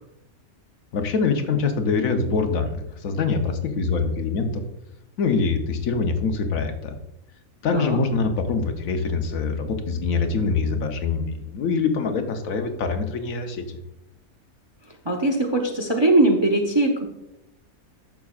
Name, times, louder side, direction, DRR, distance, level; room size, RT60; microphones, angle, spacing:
voice 1, 0.9-4.6 5.2-6.9 7.6-13.8, left 4 dB, 70° left, 6 dB, 1.2 m, -24 dB
voice 2, 15.0-17.1, right 2 dB, 25° right, 2 dB, 0.6 m, -20 dB
11.0 x 7.0 x 2.4 m, 0.88 s
omnidirectional pair, 1.5 m